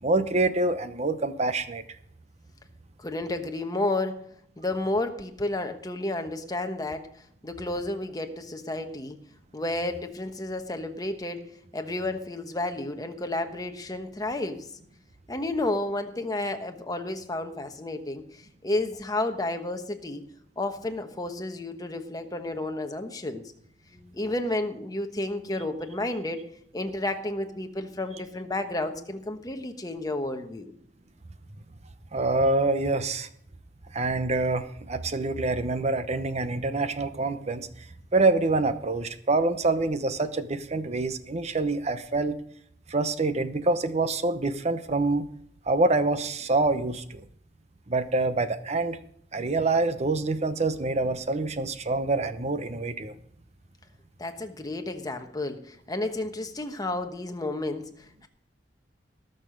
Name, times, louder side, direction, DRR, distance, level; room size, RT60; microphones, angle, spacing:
voice 1, 0.0-1.8 32.1-33.3 33.9-37.9 38.1-42.4 42.9-45.3 45.7-47.2 47.9-49.0 49.3-53.1, right 2 dB, 40° right, 11 dB, 0.8 m, -26 dB
voice 2, 3.0-4.2 4.6-9.2 9.5-11.5 11.7-14.7 15.3-20.2 20.6-23.4 23.9-26.4 26.7-30.7 54.2-58.3, left 2 dB, 20° left, 6 dB, 1.1 m, -31 dB
19.0 x 6.6 x 5.2 m, 0.66 s
head